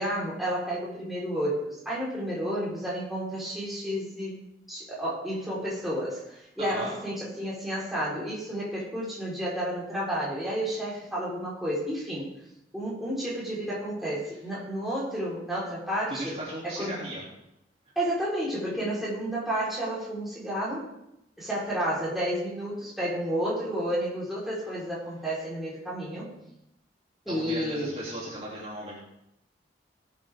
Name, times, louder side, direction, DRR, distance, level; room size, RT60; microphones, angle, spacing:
voice 1, 0.0-4.4 4.7-12.3 12.7-16.3 16.8-17.0 17.9-20.8 21.4-26.3 27.2-27.9, equal, ahead, -7 dB, 4.6 m, -31 dB
voice 2, 6.6-6.9 16.1-17.2 27.3-29.0, right 1 dB, 35° right, -6 dB, 3.3 m, -36 dB
18.5 x 8.6 x 3.8 m, 0.83 s
head